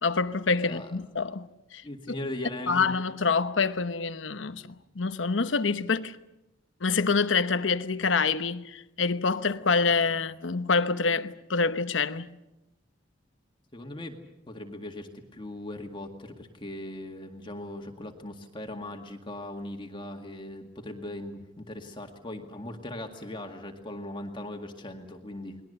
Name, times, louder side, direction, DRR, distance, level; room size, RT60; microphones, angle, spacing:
voice 1, 0.0-1.8 2.7-6.2 6.8-12.3, left 4 dB, 90° left, 1.0 m, -26 dB
voice 2, 0.6-0.9 1.8-2.9 13.7-25.6, left 1 dB, 25° left, 2.0 m, -39 dB
30.0 x 21.0 x 6.7 m
head